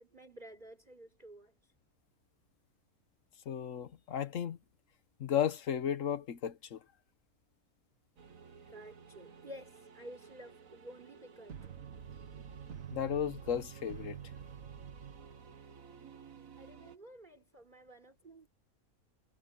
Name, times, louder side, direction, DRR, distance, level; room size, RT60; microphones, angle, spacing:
voice 1, 0.0-1.7 8.7-11.7 16.6-18.5, equal, 30° right, 4.1 m, -52 dB
voice 2, 3.5-4.6 5.2-6.8 12.9-14.2, left 9 dB, 60° left, 1.3 m, -34 dB
sound 1, 8.2-17.0, right 7 dB, 65° right, 1.8 m, -50 dB
omnidirectional pair, 1.6 m